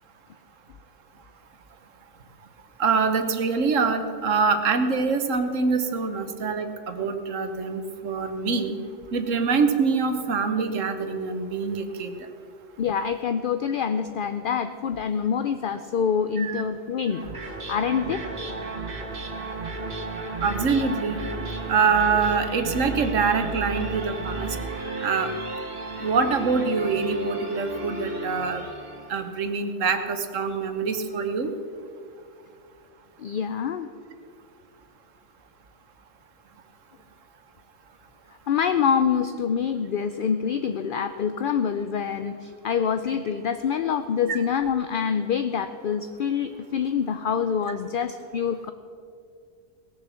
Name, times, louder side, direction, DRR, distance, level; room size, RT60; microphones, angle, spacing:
voice 1, 2.8-8.8 9.1-12.1 16.4-16.6 20.4-21.2 21.7-24.6 25.0-25.3 26.0-28.6 29.1-31.5 44.3-44.4, right 5 dB, 75° right, 8 dB, 1.4 m, -25 dB
voice 2, 12.8-18.3 33.2-33.9 38.5-48.7, left 7 dB, 60° left, 10 dB, 0.6 m, -26 dB
sound 1, 17.1-29.3, right 2 dB, 45° right, 1.7 m, -33 dB
18.0 x 7.3 x 6.9 m, 2.3 s
omnidirectional pair, 1.3 m